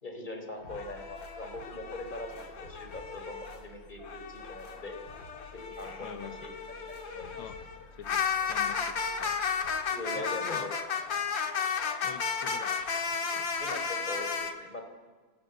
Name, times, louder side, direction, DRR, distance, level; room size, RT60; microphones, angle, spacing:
voice 1, 0.0-5.0 5.5-6.5 6.9-7.4 9.9-10.8 13.6-14.8, left 2 dB, 20° left, 5 dB, 3.8 m, -41 dB
sound 1, 0.6-9.8, right 2 dB, 40° left, 5.7 m, -54 dB
sound 2, 0.7-3.6 4.0-14.5, left 6 dB, 65° left, 2.2 m, -34 dB
voice 2, 6.0-6.5 7.4-7.6 8.0-9.4 10.2-10.7 12.0-12.9 13.4-13.5, left 8 dB, 85° left, 8 dB, 1.9 m, -46 dB
26.5 x 17.5 x 7.9 m, 1.4 s
omnidirectional pair, 2.3 m